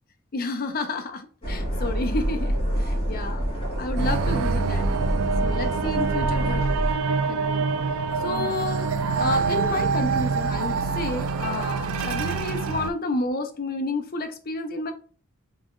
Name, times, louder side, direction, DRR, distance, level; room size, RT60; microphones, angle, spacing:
voice 1, 0.3-3.4 3.8-4.9 5.4-6.6 7.1-7.7 8.2-8.9 9.2-14.9, left 2 dB, 45° left, 7 dB, 0.6 m, -30 dB
sound 1, 1.4-6.9, equal, 30° left, 1.7 m, -27 dB
sound 2, 4.0-12.9, right 5 dB, 85° right, 0.4 m, -26 dB
3.7 x 3.0 x 2.5 m, 0.42 s
head